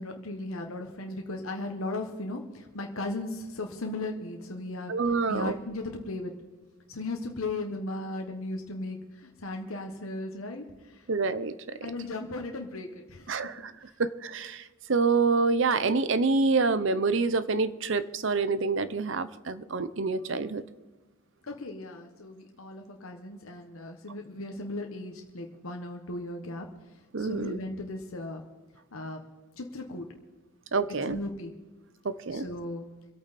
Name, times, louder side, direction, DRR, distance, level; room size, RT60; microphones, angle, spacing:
voice 1, 0.0-4.9 5.3-6.3 6.9-11.1 11.8-13.5 21.4-26.7 27.2-28.4 28.9-29.2 29.6-30.0 31.1-31.5 32.3-32.9, left 2 dB, 85° left, 3 dB, 1.3 m, -36 dB
voice 2, 4.9-5.6 11.1-11.5 13.3-13.7 14.0-20.6 27.1-27.6 30.7-31.2 32.0-32.5, right 4 dB, 65° right, 14 dB, 0.7 m, -27 dB
26.0 x 8.8 x 4.2 m, 1.2 s
head